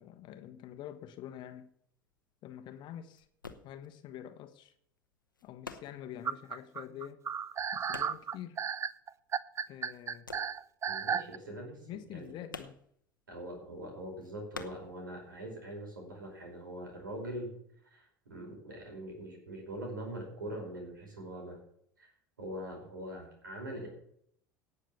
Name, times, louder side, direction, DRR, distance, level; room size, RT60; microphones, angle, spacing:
voice 1, 0.0-1.7 2.4-3.3 3.6-4.7 5.4-7.2 7.7-8.6 9.7-10.3 11.9-12.8, left 11 dB, 50° left, 1.0 m, -46 dB
sound 1, 1.4-9.4 9.7-15.6 15.8-16.9, left 4 dB, 90° left, 1.0 m, -50 dB
sound 2, 6.2-11.4, right 7 dB, 30° right, 0.6 m, -34 dB
voice 2, 10.9-12.3 13.3-17.6 17.8-21.6 22.0-22.1 22.4-23.9, right 1 dB, 80° right, 5.2 m, -43 dB
18.0 x 6.7 x 7.0 m
figure-of-eight pair, 70°, 11 cm